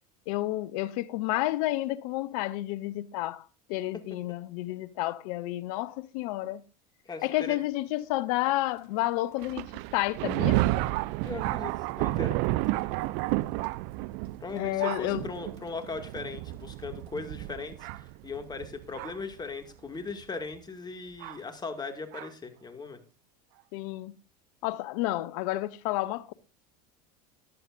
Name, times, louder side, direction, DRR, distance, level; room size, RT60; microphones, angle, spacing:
voice 1, 0.3-6.6 7.2-10.6 14.5-15.3 23.7-24.1 24.6-26.3, left 16 dB, 65° left, 0.8 m, -30 dB
voice 2, 7.1-7.6 11.2-12.4 14.4-23.0, left 4 dB, 20° left, 2.2 m, -39 dB
Thunder, 9.4-19.3 20.1-20.2 21.2-21.4 22.1-22.3, right 18 dB, 60° right, 0.4 m, -31 dB
14.5 x 11.0 x 2.6 m
hypercardioid pair, 85°, 19 cm